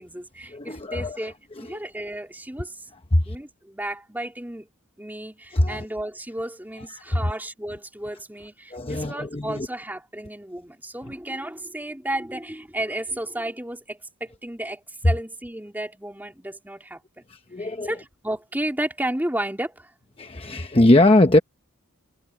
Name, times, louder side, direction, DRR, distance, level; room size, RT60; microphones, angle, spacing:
voice 1, 0.0-1.3 1.6-2.9 3.3-4.7 5.0-17.2 17.6-19.9, right 1 dB, 10° right, 3.7 m, -33 dB
voice 2, 0.5-1.2 3.1-3.4 5.5-5.8 7.1-7.2 8.7-9.7 17.3-17.9 20.2-21.4, left 1 dB, 25° left, 1.0 m, -20 dB
head